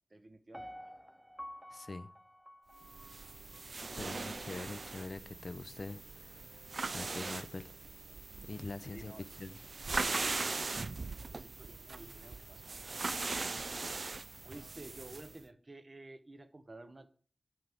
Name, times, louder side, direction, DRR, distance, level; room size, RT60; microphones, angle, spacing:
voice 1, 0.1-0.7 8.9-9.3 10.9-13.0 14.4-17.1, right 2 dB, 45° right, 0.8 m, -52 dB
Piano, 0.5-3.6 4.1-4.2, equal, 5° right, 0.5 m, -50 dB
voice 2, 1.7-2.1 4.0-6.6 6.9-7.7 8.5-9.1 9.4-9.6, left 3 dB, 60° left, 0.5 m, -44 dB
sound 1, 2.8-15.4, right 3 dB, 70° right, 0.3 m, -40 dB
7.5 x 5.9 x 3.5 m
wide cardioid pair, 55°, 0 cm